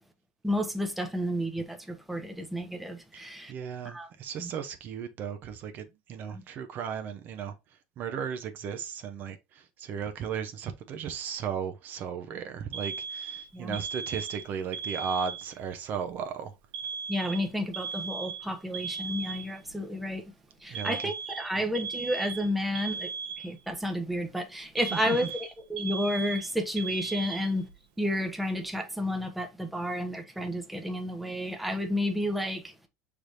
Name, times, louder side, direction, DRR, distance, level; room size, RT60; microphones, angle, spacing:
voice 1, 0.4-3.5 3.8-4.1 4.4-4.5 6.3-6.4 13.5-13.8 17.1-20.3 20.6-23.1 23.4-27.7 28.0-32.7, equal, ahead, 0.8 m, -31 dB
voice 2, 3.1-7.5 8.0-16.5 20.7-21.1 24.9-25.2, right 7 dB, 45° right, 0.6 m, -36 dB
Alarm, 12.7-15.7 16.7-19.7 20.7-23.7 24.8-27.7, right 5 dB, 75° right, 1.0 m, -37 dB
5.9 x 3.4 x 2.6 m
supercardioid pair, 135°, 5 cm